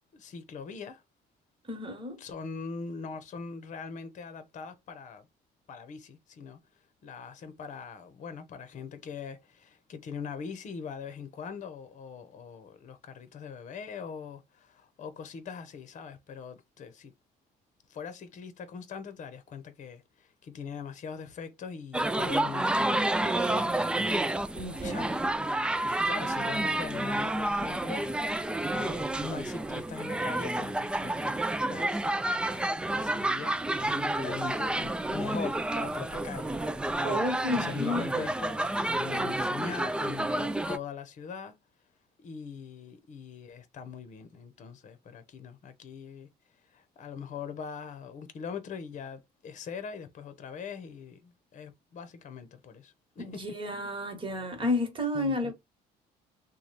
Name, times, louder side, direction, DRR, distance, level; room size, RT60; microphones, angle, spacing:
voice 1, 0.1-1.0 2.2-5.3 5.7-6.6 7.0-17.1 17.9-24.3 24.8-25.4 26.0-28.1 28.7-31.2 31.6-36.5 37.5-41.5 42.2-46.3 46.7-53.4 55.1-55.5, left 6 dB, 45° left, 0.8 m, -42 dB
voice 2, 1.7-2.2 24.5-25.2 37.0-38.3 53.2-55.5, left 1 dB, 30° right, 1.4 m, -31 dB
sound 1, 21.9-40.8, right 1 dB, 5° right, 0.3 m, -30 dB
3.2 x 2.2 x 4.1 m
cardioid pair, 110°, 17 cm